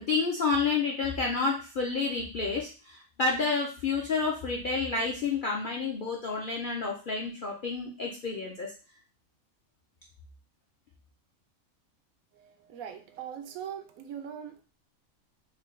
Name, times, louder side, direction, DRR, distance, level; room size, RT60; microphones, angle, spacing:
voice 1, 0.1-8.7, left 4 dB, 60° left, -1 dB, 0.5 m, -29 dB
voice 2, 12.3-14.6, right 9 dB, 75° right, 6 dB, 1.0 m, -41 dB
4.0 x 2.2 x 3.1 m, 0.34 s
omnidirectional pair, 1.5 m